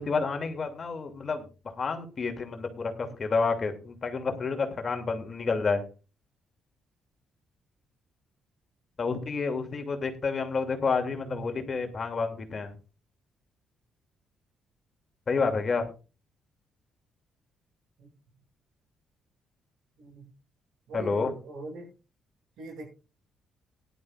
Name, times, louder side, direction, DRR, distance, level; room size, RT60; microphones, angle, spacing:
voice 1, 0.0-5.8 9.0-12.8 15.3-15.9 20.9-21.3, left 4 dB, 40° left, 5 dB, 2.6 m, -29 dB
voice 2, 20.9-21.9 22.6-22.9, right 3 dB, 75° right, 1 dB, 7.5 m, -41 dB
18.0 x 11.5 x 2.5 m, 0.32 s
cardioid pair, 90°, 0 cm